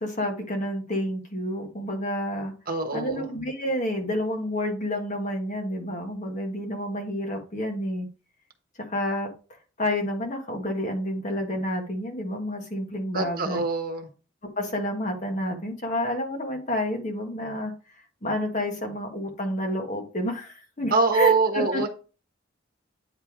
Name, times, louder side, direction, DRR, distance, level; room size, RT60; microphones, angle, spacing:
voice 1, 0.0-2.5 2.9-8.1 8.8-9.3 9.8-13.6 14.6-17.7 18.2-21.9, left 1 dB, 40° left, 1.6 m, -29 dB
voice 2, 2.7-3.2 13.1-14.1 20.9-21.9, right 4 dB, 50° right, 1.2 m, -24 dB
9.1 x 3.3 x 4.7 m
head